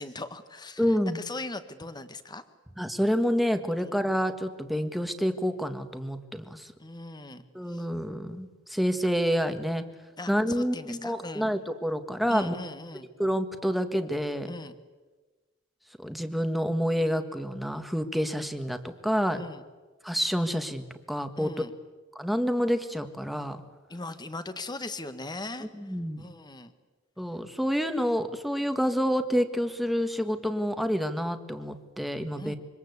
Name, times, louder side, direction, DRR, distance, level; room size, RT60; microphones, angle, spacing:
voice 1, 0.0-2.4 3.8-4.0 6.8-7.4 7.7-7.9 10.2-11.5 12.3-13.1 14.4-14.8 19.3-19.6 21.4-21.7 23.9-26.7 32.4-32.6, left 2 dB, 20° left, 10 dB, 1.6 m, -39 dB
voice 2, 0.8-1.2 2.8-6.7 7.5-9.8 10.3-12.5 13.2-14.5 16.0-19.4 20.0-21.7 22.1-23.6 25.8-26.2 27.2-32.6, equal, ahead, 7 dB, 1.7 m, -28 dB
26.5 x 24.5 x 8.2 m, 1.3 s
head